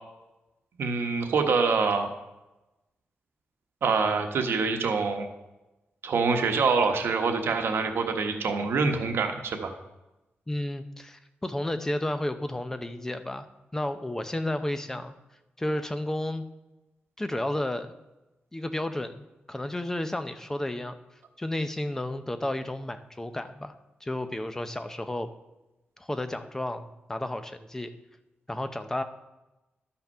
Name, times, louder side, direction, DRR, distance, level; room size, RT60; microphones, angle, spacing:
voice 1, 0.8-2.1 3.8-5.3 6.0-9.7, right 4 dB, 80° right, 5 dB, 1.1 m, -25 dB
voice 2, 10.5-13.5 13.7-15.1 15.6-16.4 17.2-17.9 18.5-21.0 21.4-23.7 24.0-25.3 26.0-27.9 28.5-29.0, left 1 dB, 10° left, 9 dB, 0.6 m, -32 dB
12.0 x 5.8 x 5.4 m, 1.0 s
wide cardioid pair, 160°, 4 cm